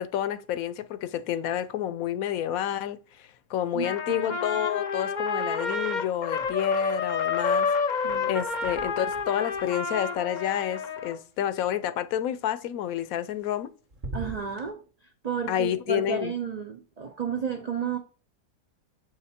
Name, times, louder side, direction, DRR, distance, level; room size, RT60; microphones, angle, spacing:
voice 1, 0.0-7.7 7.9-13.7 15.5-16.3, left 11 dB, 75° left, 1.0 m, -29 dB
voice 2, 3.7-4.4 8.0-8.4 14.1-14.8 15.2-18.0, right 7 dB, 65° right, 0.4 m, -32 dB
Trumpet, 3.8-11.2, left 5 dB, 45° left, 0.7 m, -29 dB
sound 1, 6.3-7.0 7.3-11.4 13.0-13.6 13.9-14.7, right 1 dB, 40° right, 1.0 m, -44 dB
7.8 x 5.0 x 4.2 m
omnidirectional pair, 1.6 m